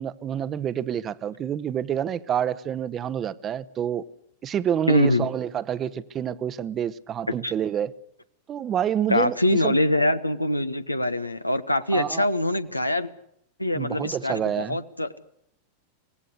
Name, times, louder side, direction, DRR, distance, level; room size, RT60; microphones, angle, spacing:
voice 1, 0.0-4.0 4.4-7.9 8.5-9.8 11.9-12.3 13.7-14.8, right 9 dB, 25° right, 0.9 m, -28 dB
voice 2, 4.9-5.3 7.4-7.5 9.1-13.1 13.6-15.3, left 1 dB, 85° left, 1.0 m, -24 dB
24.5 x 18.0 x 8.2 m
figure-of-eight pair, 90°, 0 cm